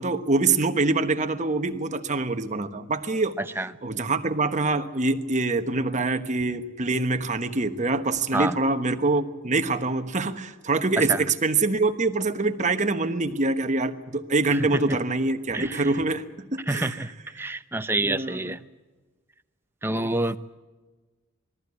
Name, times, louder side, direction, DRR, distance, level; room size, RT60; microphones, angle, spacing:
voice 1, 0.0-3.3 3.8-17.0 18.0-18.6 20.0-20.2, right 3 dB, 35° right, 7 dB, 1.2 m, -25 dB
voice 2, 16.7-17.1 17.4-18.6 19.8-20.4, right 2 dB, 10° right, 10 dB, 0.7 m, -27 dB
20.5 x 14.5 x 9.5 m, 1.3 s
head